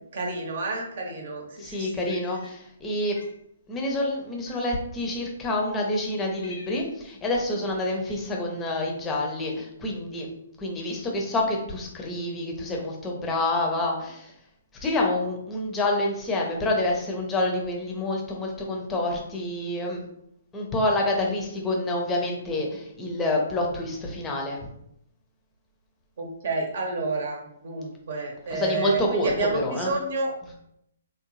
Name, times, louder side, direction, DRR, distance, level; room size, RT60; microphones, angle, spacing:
voice 1, 0.1-2.1 26.2-30.3, right 3 dB, 55° right, 1 dB, 0.9 m, -30 dB
voice 2, 1.6-3.2 3.7-10.3 10.6-14.3 14.8-20.0 20.5-24.7 28.5-29.9, left 2 dB, 15° left, 0 dB, 0.7 m, -27 dB
Cat, 2.0-2.9 3.1-3.4 4.4-5.0 5.7-5.8 6.1-7.1, left 4 dB, 60° left, 0.5 m, -47 dB
3.6 x 2.3 x 3.1 m, 0.76 s
figure-of-eight pair, 125°, 0 cm